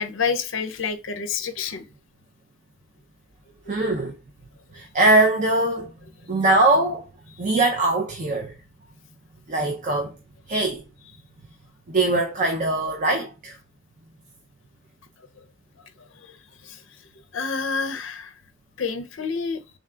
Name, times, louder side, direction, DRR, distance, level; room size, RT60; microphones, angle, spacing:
voice 1, 0.0-1.9 3.6-3.7 15.4-15.5 16.1-16.4 16.6-16.8 17.3-18.3 18.8-19.6, left 5 dB, 65° left, 0.5 m, -28 dB
voice 2, 3.7-4.1 4.7-5.9 6.3-7.1 7.4-8.5 9.5-10.1 10.5-10.8 11.9-13.6, right 2 dB, 35° right, 0.5 m, -21 dB
3.7 x 2.2 x 3.6 m
head